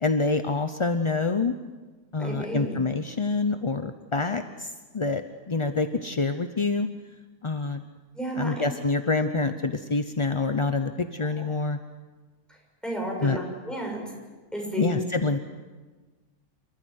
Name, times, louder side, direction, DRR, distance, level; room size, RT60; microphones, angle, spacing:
voice 1, 0.0-1.5 2.1-5.2 5.5-6.9 7.4-7.8 8.4-11.8 13.2-13.4 14.8-15.4, left 3 dB, 35° left, 8 dB, 0.5 m, -26 dB
voice 2, 2.2-2.8 8.1-8.6 11.4-11.5 12.8-14.0 14.5-15.0, right 1 dB, ahead, -1 dB, 6.8 m, -32 dB
28.5 x 13.5 x 9.5 m, 1.3 s
omnidirectional pair, 1.6 m